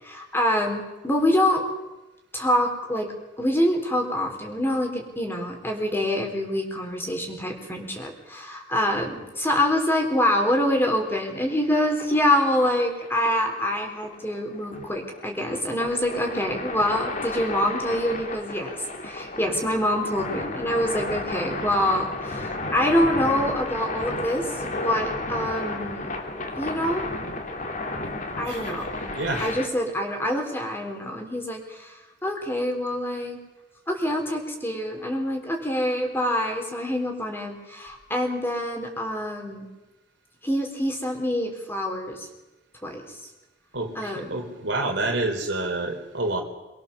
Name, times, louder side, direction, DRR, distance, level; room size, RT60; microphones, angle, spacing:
voice 1, 0.0-1.6 2.3-3.1 3.4-18.7 19.0-26.1 26.6-27.1 28.4-28.9 29.4-33.4 33.9-39.7 40.4-42.3 42.8-43.2 43.9-44.4, left 1 dB, 15° left, 2 dB, 4.1 m, -26 dB
sound 1, 11.3-29.7, left 2 dB, 45° left, 2.8 m, -33 dB
voice 2, 29.1-29.5 43.7-46.4, right 2 dB, 75° right, 3 dB, 3.9 m, -28 dB
24.5 x 21.5 x 7.1 m, 1.0 s
head